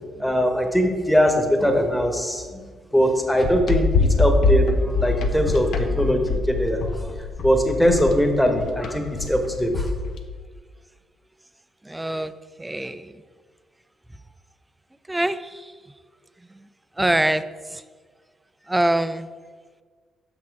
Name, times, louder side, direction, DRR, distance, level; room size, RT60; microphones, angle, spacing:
voice 1, 0.2-2.4 2.9-7.1 7.4-9.9, equal, 5° left, 4 dB, 1.1 m, -21 dB
sound 1, 3.4-10.2, left 3 dB, 75° left, 0.7 m, -23 dB
voice 2, 11.9-12.3 12.6-13.1 15.1-15.4 17.0-17.4 18.7-19.3, right 1 dB, 10° right, 13 dB, 0.4 m, -23 dB
6.1 x 6.0 x 4.6 m, 1.5 s
cardioid pair, 80°, 0 cm